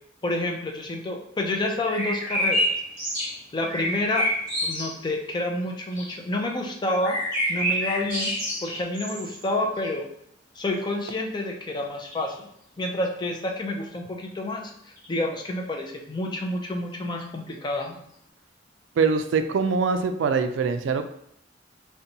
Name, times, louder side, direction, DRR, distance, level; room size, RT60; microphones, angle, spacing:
voice 1, 0.2-2.6 3.5-4.3 4.6-7.2 7.5-8.3 8.6-10.1 10.6-12.5 12.8-14.7 15.1-18.0, left 1 dB, 25° left, 2 dB, 0.4 m, -29 dB
sound 1, 1.9-3.3 3.7-4.9 5.9-6.1 7.0-9.4 9.8-9.9 12.0-12.3 15.0-15.1, equal, 50° right, 1.5 m, -28 dB
voice 2, 19.0-21.1, right 5 dB, 75° right, 8 dB, 0.3 m, -23 dB
4.0 x 2.2 x 2.7 m, 0.71 s
head